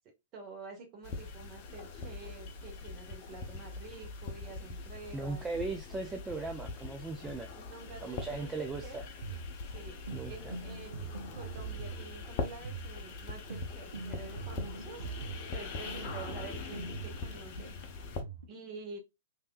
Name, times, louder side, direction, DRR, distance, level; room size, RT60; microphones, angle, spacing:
voice 1, 0.3-5.5 7.2-9.0 9.6-15.1 15.5-17.7 18.5-19.0, right 4 dB, 30° right, 1.3 m, -48 dB
sound 1, 1.0-18.2, left 4 dB, 40° left, 0.6 m, -42 dB
voice 2, 5.1-7.5 8.0-9.1 10.1-10.6, right 3 dB, 10° right, 0.4 m, -38 dB
sound 2, 8.7-18.5, right 4 dB, 65° right, 0.6 m, -43 dB
3.3 x 2.7 x 2.4 m
figure-of-eight pair, 110°, 0 cm